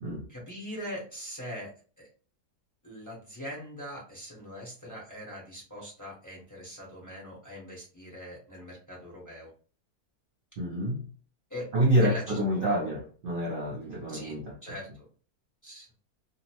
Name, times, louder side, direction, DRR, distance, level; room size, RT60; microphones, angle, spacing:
voice 1, 0.3-2.1 2.8-9.5 11.5-11.7 12.0-12.9 14.1-14.3 14.6-15.1 15.6-15.9, equal, 15° left, -5 dB, 0.8 m, -41 dB
voice 2, 10.6-11.0 11.7-14.5, right 1 dB, 60° right, -2 dB, 0.5 m, -27 dB
2.8 x 2.0 x 2.8 m, 0.40 s
omnidirectional pair, 1.7 m